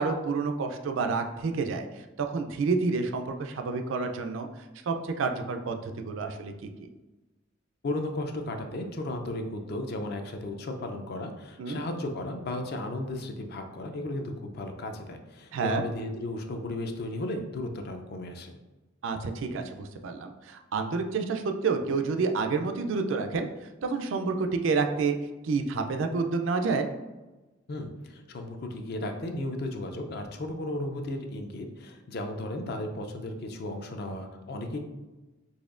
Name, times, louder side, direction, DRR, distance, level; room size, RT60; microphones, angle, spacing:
voice 1, 0.0-4.5 4.9-6.9 11.6-11.8 15.5-15.9 19.0-23.5 23.8-25.1 25.4-26.9, right 4 dB, 70° right, 6 dB, 0.4 m, -29 dB
voice 2, 7.8-18.5 27.7-34.8, left 1 dB, 50° left, 5 dB, 0.4 m, -35 dB
4.1 x 3.0 x 2.4 m, 1.1 s
head